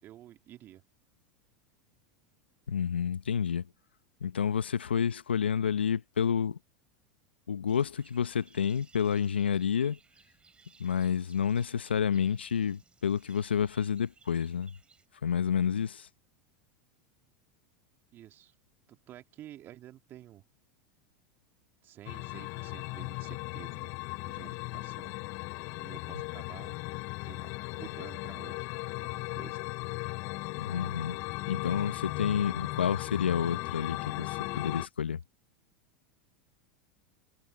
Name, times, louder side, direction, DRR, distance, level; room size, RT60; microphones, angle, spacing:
voice 1, 0.0-0.8 18.1-18.6 18.9-20.4 21.8-24.0 24.2-25.2 25.7-26.7 27.2-28.7 29.0-29.7, right 13 dB, 40° right, 2.0 m, -51 dB
voice 2, 2.7-3.6 4.2-6.6 7.5-10.0 10.8-14.7 15.2-16.1 30.6-31.2 31.5-35.2, left 7 dB, 85° left, 1.1 m, -29 dB
sound 1, 7.7-15.1, right 5 dB, 20° right, 8.0 m, -62 dB
sound 2, 22.1-34.9, left 27 dB, 55° left, 0.6 m, -37 dB
hypercardioid pair, 90°, 6 cm